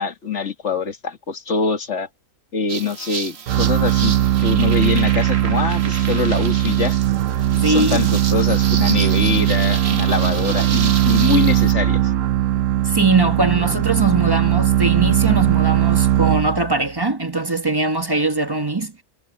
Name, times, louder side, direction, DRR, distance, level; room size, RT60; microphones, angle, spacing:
voice 1, 0.0-2.1 2.5-7.0 7.5-12.1, left 5 dB, 60° left, 2.2 m, -24 dB
sound 1, 2.7-11.7, right 6 dB, 55° right, 1.4 m, -31 dB
sound 2, 3.5-16.9, right 12 dB, 75° right, 1.0 m, -19 dB
voice 2, 7.6-8.1 12.8-19.0, right 3 dB, 20° right, 1.2 m, -21 dB
omnidirectional pair, 1.4 m